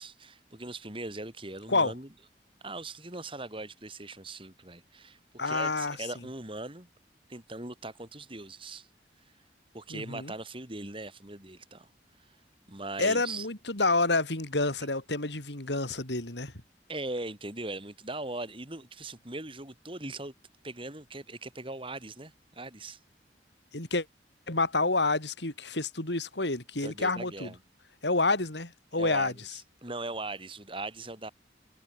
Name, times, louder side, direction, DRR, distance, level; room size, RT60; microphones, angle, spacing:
voice 1, 0.0-2.1 2.6-5.2 5.4-6.9 7.3-8.9 9.7-11.9 12.7-13.5 16.9-20.3 20.6-23.0 26.8-27.6 28.9-29.3 29.8-31.3, right 2 dB, 30° right, 4.5 m, -40 dB
voice 2, 5.4-6.0 9.9-10.3 13.0-16.5 23.7-24.1 24.5-27.5 28.0-29.3, left 3 dB, 85° left, 4.6 m, -28 dB
head